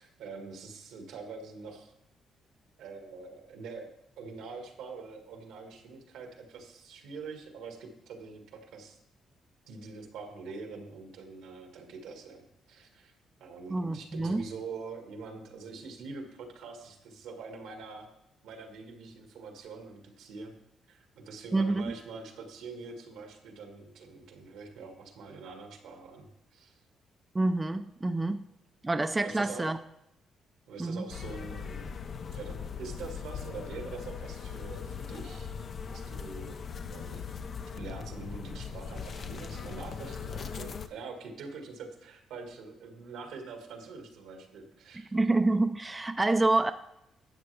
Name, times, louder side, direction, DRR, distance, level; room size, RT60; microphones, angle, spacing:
voice 1, 0.0-1.9 2.8-9.0 9.7-13.1 13.4-18.1 18.4-20.5 20.9-26.8 29.2-29.7 30.7-31.9 32.3-35.6 35.9-36.6 36.9-37.2 37.8-45.1, right 4 dB, 90° right, 3 dB, 1.9 m, -44 dB
voice 2, 13.7-14.5 21.5-21.9 27.3-28.4 28.8-29.8 30.8-31.0 45.1-46.7, right 2 dB, 15° right, 8 dB, 0.5 m, -27 dB
sound 1, 31.1-40.9, left 6 dB, 50° left, 0.6 m, -40 dB
12.0 x 7.6 x 3.4 m, 0.81 s
cardioid pair, 90°, 0 cm